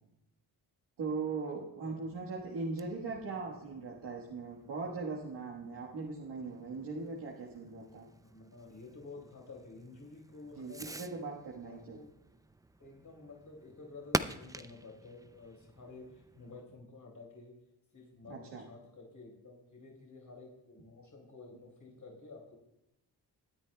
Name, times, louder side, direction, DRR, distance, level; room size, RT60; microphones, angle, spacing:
voice 1, 1.0-8.1 10.5-12.0 18.3-18.6, right 4 dB, 90° right, -4 dB, 1.5 m, -39 dB
Fireworks, 2.1-16.7, right 2 dB, 10° right, 0.4 m, -45 dB
voice 2, 8.2-11.3 11.6-12.1 12.8-17.5 17.9-22.6, left 3 dB, 50° left, -1 dB, 4.7 m, -51 dB
21.0 x 9.9 x 2.3 m, 0.89 s
cardioid pair, 70°, 40 cm